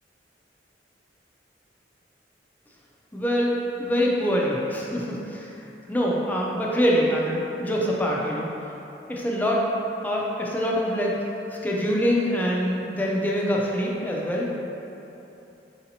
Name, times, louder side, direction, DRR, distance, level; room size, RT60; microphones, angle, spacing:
voice 1, 3.1-3.5 3.8-5.5 5.9-8.5 9.1-9.6 10.0-11.1 11.6-14.5, equal, 10° left, -3 dB, 0.4 m, -24 dB
4.9 x 2.6 x 2.8 m, 3.0 s
head